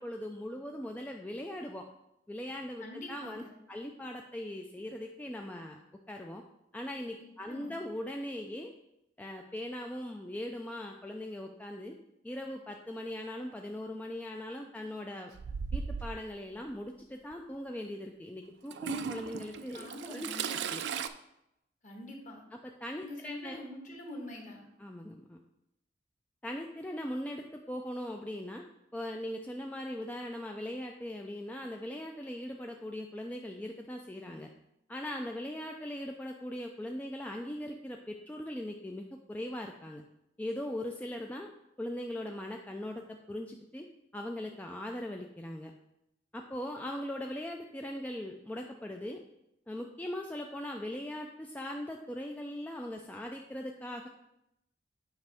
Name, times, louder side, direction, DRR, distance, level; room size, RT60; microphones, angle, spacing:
voice 1, 0.0-1.9 2.3-3.4 3.7-5.8 6.1-6.4 6.7-8.7 9.2-12.0 12.2-15.3 15.7-20.8 22.6-23.7 24.8-25.4 26.4-28.6 28.9-34.5 34.9-40.0 40.4-41.5 41.8-43.9 44.1-45.7 46.3-49.2 49.7-54.1, left 1 dB, 10° left, 2 dB, 0.3 m, -40 dB
voice 2, 2.8-3.5 7.2-7.7 19.7-20.6 21.8-22.4 23.0-24.7, left 1 dB, 45° left, 1 dB, 1.3 m, -45 dB
Toilet flush / Trickle dribble, 15.3-16.3 17.3-17.4 18.7-21.1, right 6 dB, 70° right, 0.4 m, -37 dB
8.0 x 5.1 x 3.5 m, 0.84 s
head